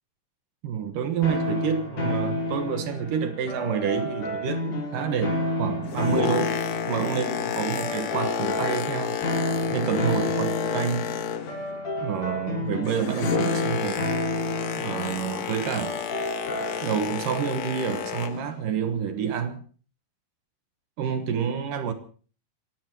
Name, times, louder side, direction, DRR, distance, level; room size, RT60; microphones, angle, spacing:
voice 1, 0.6-6.6 6.9-9.2 9.7-11.2 12.0-14.1 14.8-16.0 16.8-19.6 21.0-21.9, right 7 dB, 70° right, 2.8 m, -28 dB
sound 1, 1.2-17.1, left 1 dB, 80° left, 6.9 m, -31 dB
Boat Water vehicle, 5.7-11.8 12.1-18.5 19.2-19.3, left 9 dB, 65° left, 2.4 m, -31 dB
28.5 x 16.5 x 3.0 m
omnidirectional pair, 4.0 m